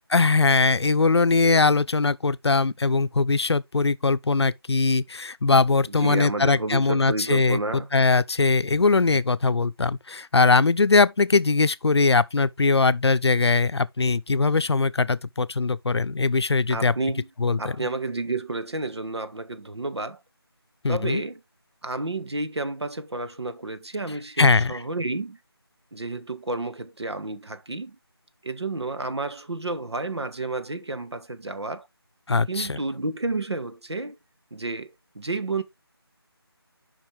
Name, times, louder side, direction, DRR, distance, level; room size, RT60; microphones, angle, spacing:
voice 1, 0.1-16.9 17.4-17.9 20.8-21.2 24.4-24.8 32.3-32.8, left 4 dB, 80° left, 0.6 m, -21 dB
voice 2, 5.9-7.9 16.7-17.3 17.6-20.2 20.9-21.4 21.8-25.4 25.9-28.0 28.4-31.9 32.5-34.2 34.5-35.6, right 2 dB, 90° right, 1.3 m, -31 dB
7.4 x 5.4 x 3.4 m
figure-of-eight pair, 175°, 14 cm